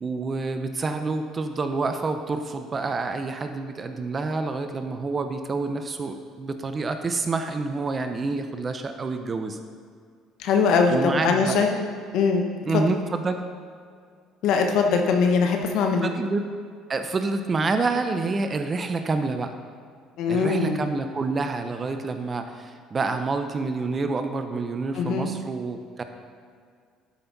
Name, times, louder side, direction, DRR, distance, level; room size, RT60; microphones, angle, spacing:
voice 1, 0.0-9.6 10.9-11.6 12.7-13.4 16.0-16.4 16.9-19.5 20.3-26.0, right 3 dB, 35° right, 7 dB, 0.7 m, -28 dB
voice 2, 10.4-11.7 12.1-12.4 12.7-12.8 14.4-16.1 20.2-20.8 24.9-25.3, left 5 dB, 70° left, 4 dB, 1.1 m, -21 dB
11.5 x 5.6 x 4.0 m, 2.1 s
supercardioid pair, 80°, 0 cm